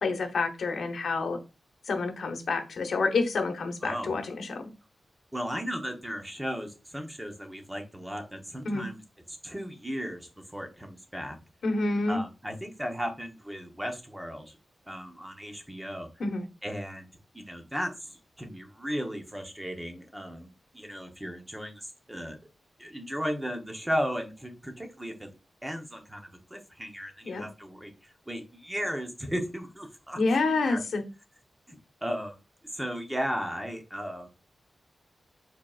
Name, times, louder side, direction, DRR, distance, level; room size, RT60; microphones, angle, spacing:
voice 1, 0.0-1.4 1.9-4.7 8.7-8.9 11.6-12.2 16.2-16.4 27.2-27.4 30.2-31.0, left 3 dB, 75° left, 4 dB, 1.0 m, -28 dB
voice 2, 3.8-4.1 5.3-9.0 9.3-11.4 12.1-14.6 14.9-16.1 16.6-17.1 17.3-22.4 22.8-25.3 25.6-30.2 30.4-30.8 31.7-32.4 32.7-34.3, equal, 10° right, 3 dB, 0.9 m, -35 dB
4.8 x 4.3 x 2.4 m, 0.29 s
wide cardioid pair, 150°, 0 cm